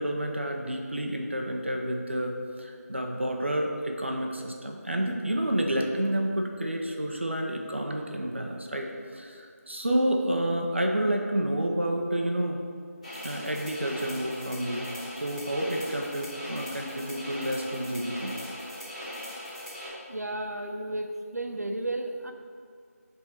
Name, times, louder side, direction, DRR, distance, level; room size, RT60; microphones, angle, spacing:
voice 1, 0.0-12.6 13.2-14.9 15.2-18.3, right 1 dB, 45° right, 2 dB, 0.6 m, -29 dB
sound 1, 13.0-19.9, left 1 dB, 25° left, 1.6 m, -39 dB
voice 2, 20.1-22.3, right 1 dB, 80° right, 5 dB, 0.7 m, -33 dB
7.1 x 3.6 x 4.4 m, 2.1 s
figure-of-eight pair, 180°, 9 cm